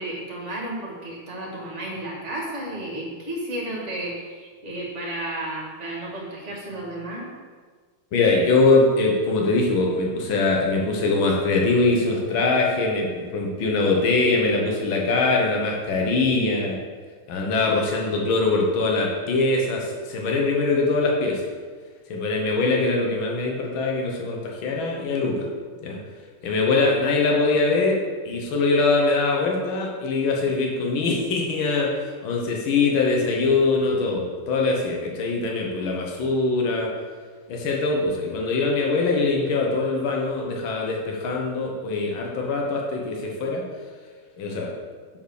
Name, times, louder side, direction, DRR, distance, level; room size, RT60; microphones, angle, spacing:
voice 1, 0.0-7.3, right 1 dB, 35° right, -3 dB, 1.8 m, -32 dB
voice 2, 8.1-16.8 17.3-21.4 22.1-25.5 25.8-26.0 26.4-36.9 37.5-43.6 44.4-44.7, left 3 dB, 70° left, -1 dB, 1.9 m, -22 dB
6.8 x 4.6 x 6.4 m, 1.5 s
omnidirectional pair, 2.3 m